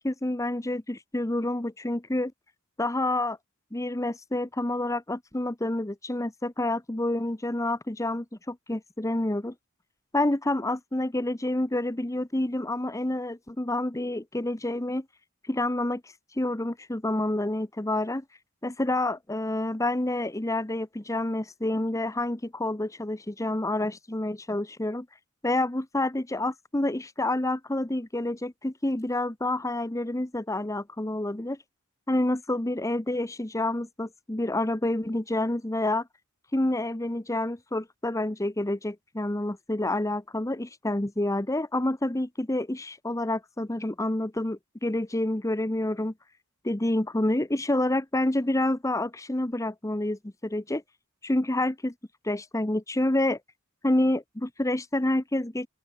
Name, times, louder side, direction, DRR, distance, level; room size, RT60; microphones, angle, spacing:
voice 1, 0.0-2.3 2.8-3.4 3.7-9.5 10.1-15.0 15.5-18.2 18.6-25.1 25.4-31.6 32.1-36.1 36.5-46.1 46.6-50.8 51.2-51.9 52.2-53.4 53.8-55.7, left 1 dB, 15° left, 1.0 m, -28 dB
open air
head